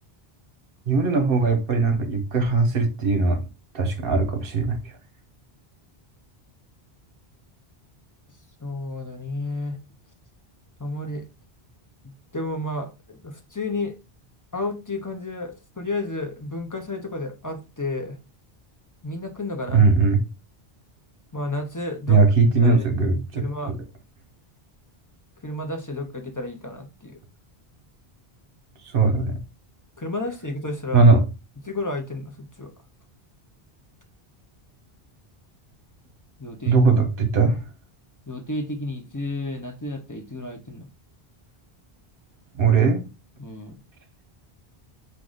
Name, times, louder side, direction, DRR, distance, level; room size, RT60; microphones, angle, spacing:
voice 1, 0.9-3.4 3.7-4.8 19.7-20.2 22.1-23.8 28.9-29.4 30.9-31.2 36.7-37.6 42.6-43.0, right 4 dB, 65° right, 1.1 m, -19 dB
voice 2, 8.6-9.8 10.8-11.3 12.0-14.0 14.5-18.2 19.0-19.8 21.3-22.2 22.6-22.9 23.4-23.7 25.4-27.2 30.0-31.1 31.6-32.7 36.4-36.8 38.3-40.9 43.4-43.8, left 2 dB, 20° left, 0.6 m, -31 dB
4.8 x 2.5 x 3.8 m
omnidirectional pair, 1.0 m